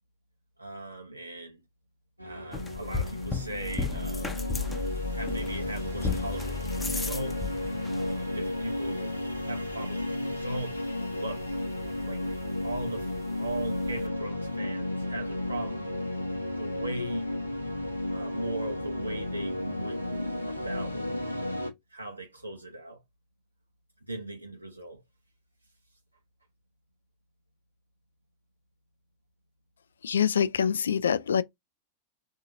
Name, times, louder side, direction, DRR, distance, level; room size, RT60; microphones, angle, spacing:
voice 1, 0.6-1.6 2.2-4.4 5.1-7.4 7.9-9.2 9.5-10.8 11.2-11.5 12.0-12.2 12.6-13.1 13.4-16.0 16.6-17.3 18.1-20.0 20.4-21.1 21.9-23.0 24.1-25.0, right 2 dB, 85° right, 0.6 m, -39 dB
sound 1, 2.2-21.7, left 1 dB, 90° left, 0.8 m, -33 dB
sound 2, 2.5-14.1, left 4 dB, 10° left, 0.7 m, -37 dB
voice 2, 30.0-31.4, left 7 dB, 70° left, 0.3 m, -25 dB
3.6 x 2.7 x 2.4 m
figure-of-eight pair, 90°, 0 cm